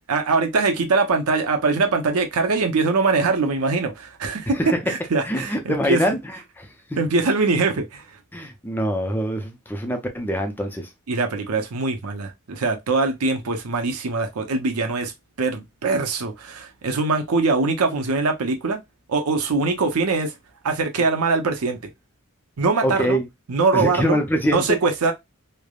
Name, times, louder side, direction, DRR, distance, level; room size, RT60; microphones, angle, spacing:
voice 1, 0.1-6.0 7.0-8.0 11.1-15.1 15.4-18.8 19.1-20.3 20.6-21.9 22.6-23.2 23.5-24.2 24.5-25.1, right 3 dB, 90° right, 0.6 m, -22 dB
voice 2, 5.3-7.0 8.3-10.9 22.8-23.2 23.7-24.8, equal, 10° left, 0.4 m, -24 dB
3.3 x 2.0 x 2.3 m
head